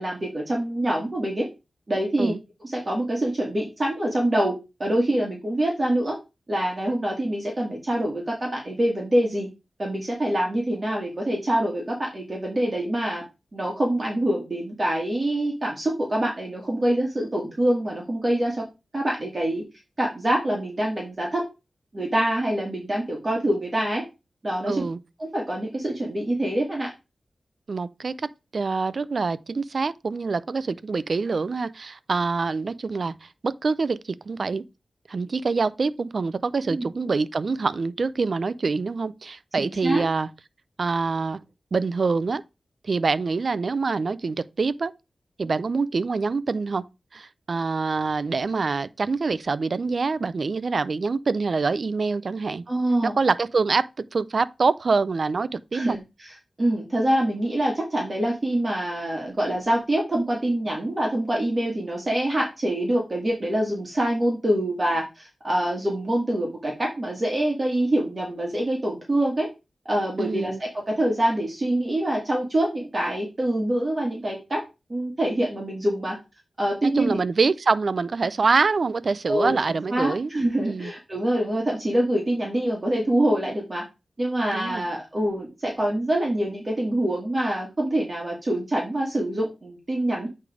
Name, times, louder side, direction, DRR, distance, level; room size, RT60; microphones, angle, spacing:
voice 1, 0.0-1.5 1.9-2.3 2.6-4.5 4.8-6.2 6.5-9.5 9.8-13.2 13.5-18.6 18.9-19.6 20.0-21.4 21.9-24.0 24.4-24.8 25.2-26.9 36.6-36.9 39.6-40.0 52.7-53.1 55.7-69.5 69.8-74.6 74.9-76.1 76.6-77.2 79.3-79.5 79.9-83.8 84.2-90.3, right 1 dB, 35° right, 1.7 m, -25 dB
voice 2, 24.7-25.0 27.7-34.6 35.1-40.3 40.8-41.4 41.7-42.4 42.8-44.9 45.4-46.8 47.1-52.7 53.0-56.0 70.2-70.6 76.8-80.3 80.6-80.9 84.5-84.9, right 4 dB, 60° right, 0.4 m, -25 dB
8.4 x 3.3 x 4.9 m
wide cardioid pair, 85°, 0 cm